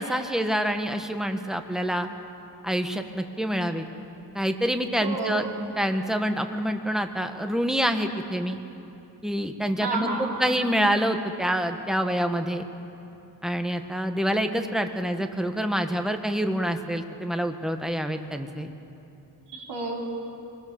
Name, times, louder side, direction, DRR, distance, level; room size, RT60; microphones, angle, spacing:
voice 1, 0.0-2.1 2.6-3.8 4.3-5.4 5.8-8.6 9.2-12.6 13.4-18.7, equal, ahead, 6 dB, 1.3 m, -27 dB
voice 2, 5.0-5.6 9.8-10.5 19.5-20.0, right 3 dB, 85° right, -3 dB, 4.5 m, -30 dB
24.5 x 20.5 x 7.1 m, 3.0 s
wide cardioid pair, 100°, 39 cm